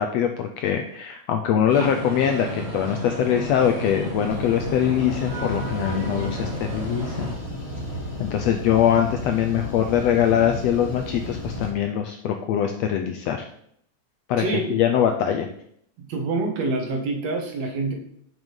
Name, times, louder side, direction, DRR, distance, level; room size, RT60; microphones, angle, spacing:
voice 1, 0.0-7.3 8.2-13.4 14.3-14.4 14.7-15.5, left 9 dB, 75° left, 5 dB, 1.6 m, -23 dB
sound 1, 1.7-7.3, equal, 30° right, 1.4 m, -31 dB
sound 2, 4.3-11.7, equal, 30° left, 3.5 m, -34 dB
voice 2, 14.4-14.8 16.0-17.9, right 3 dB, 65° right, 2 dB, 2.5 m, -26 dB
6.9 x 6.2 x 5.3 m, 0.67 s
omnidirectional pair, 3.6 m